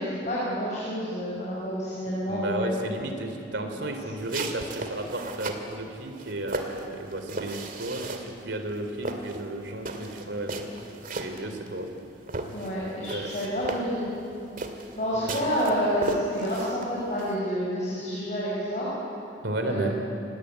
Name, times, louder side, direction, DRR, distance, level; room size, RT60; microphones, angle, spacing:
voice 1, 0.0-2.7 12.5-14.1 14.9-18.9 19.7-20.1, equal, 40° left, -7 dB, 6.3 m, -29 dB
voice 2, 2.3-10.7 11.1-11.9 13.1-13.3 15.1-15.4 19.4-20.0, right 1 dB, 70° right, 5 dB, 3.4 m, -33 dB
sound 1, 4.2-5.7 6.2-8.4 8.7-12.0 12.3-17.4, right 2 dB, 50° right, 2.3 m, -35 dB
27.0 x 18.5 x 9.6 m, 2.6 s
head